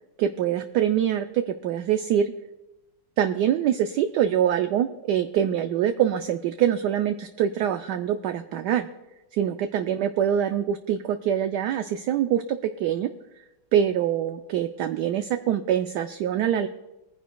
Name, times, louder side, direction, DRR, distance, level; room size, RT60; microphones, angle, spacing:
voice 1, 0.2-2.3 3.2-8.9 9.3-13.1 13.7-16.7, right 10 dB, 75° right, 8 dB, 1.0 m, -24 dB
21.5 x 10.0 x 2.3 m, 1.0 s
omnidirectional pair, 2.1 m